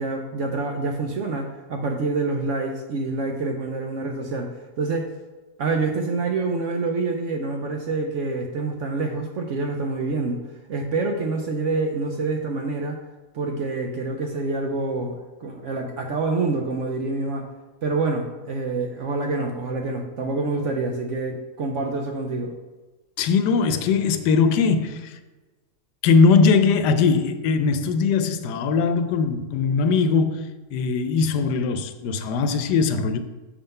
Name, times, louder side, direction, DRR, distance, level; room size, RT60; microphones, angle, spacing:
voice 1, 0.0-5.1 5.6-10.4 10.7-13.0 13.3-17.5 17.8-22.6, right 3 dB, 65° right, 0.7 m, -27 dB
voice 2, 23.2-25.1 26.0-33.2, left 5 dB, 85° left, 1.2 m, -20 dB
6.8 x 3.7 x 5.3 m
omnidirectional pair, 1.7 m